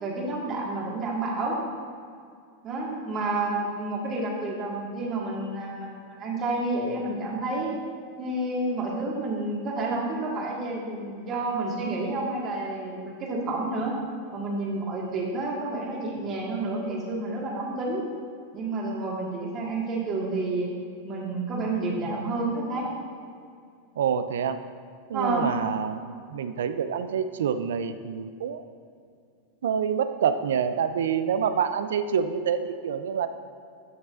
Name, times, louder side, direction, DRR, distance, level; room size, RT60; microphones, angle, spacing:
voice 1, 0.0-1.5 2.6-7.7 8.2-14.0 14.3-18.1 18.5-20.7 21.0-22.9 25.1-25.5, right 2 dB, 35° right, -2 dB, 1.8 m, -30 dB
voice 2, 24.0-24.6 25.1-28.6 29.6-33.3, right 7 dB, 80° right, 10 dB, 0.4 m, -27 dB
10.5 x 6.0 x 2.6 m, 2.3 s
hypercardioid pair, 115°, 0 cm